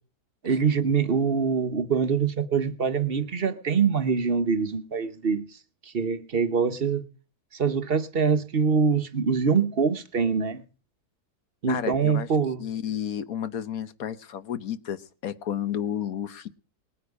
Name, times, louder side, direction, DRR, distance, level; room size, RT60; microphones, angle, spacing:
voice 1, 0.4-5.6 5.8-7.0 7.5-10.6 11.6-12.7, right 6 dB, 40° right, 1.0 m, -24 dB
voice 2, 11.7-12.3 12.6-16.5, left 9 dB, 65° left, 1.4 m, -31 dB
20.5 x 9.3 x 4.8 m
omnidirectional pair, 1.7 m